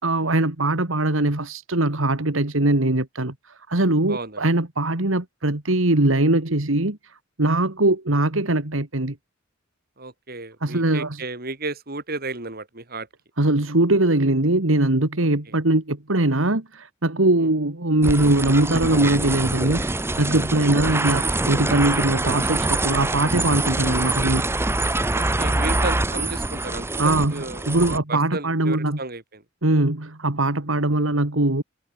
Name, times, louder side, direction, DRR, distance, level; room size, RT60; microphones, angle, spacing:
voice 1, 0.0-3.3 3.7-7.0 7.4-9.2 10.6-11.2 13.4-24.5 27.0-29.0 29.6-31.6, right 2 dB, 80° right, 2.3 m, -21 dB
voice 2, 4.1-4.5 10.0-13.1 15.2-15.3 17.4-17.5 20.6-20.7 25.1-27.8 28.1-29.4, right 3 dB, 50° right, 5.4 m, -33 dB
sound 1, 18.0-28.0, right 2 dB, 10° right, 0.8 m, -25 dB
head